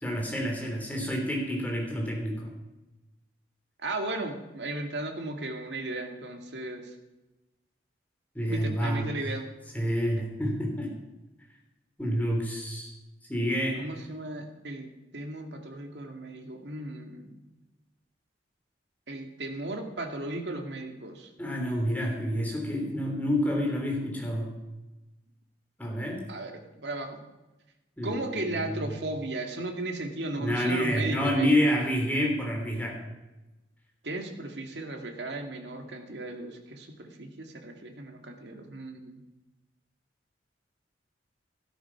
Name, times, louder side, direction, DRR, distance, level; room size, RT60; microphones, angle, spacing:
voice 1, 0.0-2.5 8.3-9.1 9.7-10.9 12.0-12.9 13.3-13.8 21.4-24.5 25.8-26.2 28.0-28.8 30.4-33.0, equal, 10° left, -1 dB, 3.3 m, -28 dB
voice 2, 3.8-6.9 8.5-9.5 13.8-17.4 19.1-21.3 26.3-27.2 28.0-31.5 34.0-39.2, right 2 dB, 70° right, 4 dB, 2.0 m, -36 dB
13.0 x 12.5 x 5.9 m, 1.0 s
head